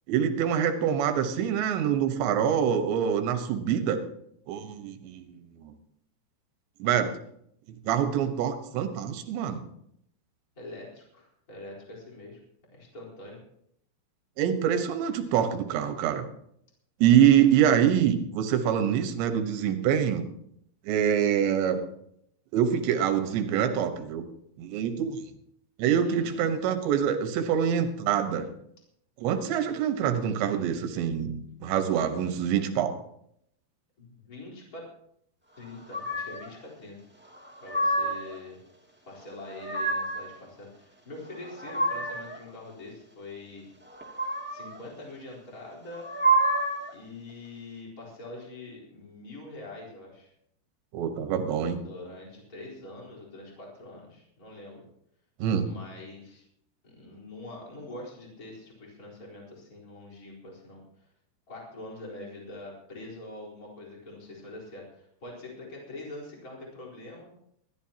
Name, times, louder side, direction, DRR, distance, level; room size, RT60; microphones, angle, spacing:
voice 1, 0.1-4.0 4.5-5.3 5.6-5.7 6.8-7.1 7.9-9.6 14.4-16.2 17.0-20.3 20.9-21.8 22.5-24.2 24.6-25.2 25.8-28.5 29.2-33.0 50.9-51.8 55.4-55.7, right 9 dB, 80° right, 8 dB, 3.4 m, -25 dB
voice 2, 10.5-12.4 12.7-13.4 26.0-26.5 34.0-34.8 35.6-37.0 37.6-38.6 39.0-43.7 44.5-46.1 46.9-50.3 51.8-54.8 55.6-56.4 56.8-61.1 61.5-67.3, left 2 dB, 20° left, -3 dB, 4.1 m, -44 dB
sound 1, 35.9-36.5 37.3-38.3 39.3-40.3 41.2-42.4 43.9-44.8 45.9-46.9, right 2 dB, 10° right, 0.5 m, -28 dB
21.0 x 14.5 x 2.9 m, 0.72 s
omnidirectional pair, 5.1 m